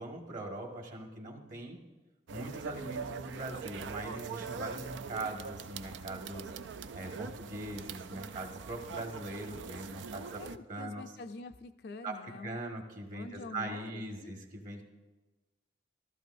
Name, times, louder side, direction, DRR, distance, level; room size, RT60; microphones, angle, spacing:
voice 1, 0.0-1.8 2.3-6.5 6.9-10.4 10.7-11.0 12.0-14.8, right 2 dB, 45° right, 1 dB, 1.6 m, -41 dB
sound 1, 2.3-10.6, right 5 dB, 85° right, 0.4 m, -43 dB
voice 2, 10.4-12.6 13.1-14.4, left 3 dB, 55° left, 7 dB, 0.4 m, -46 dB
15.0 x 13.5 x 2.6 m, 1.2 s
head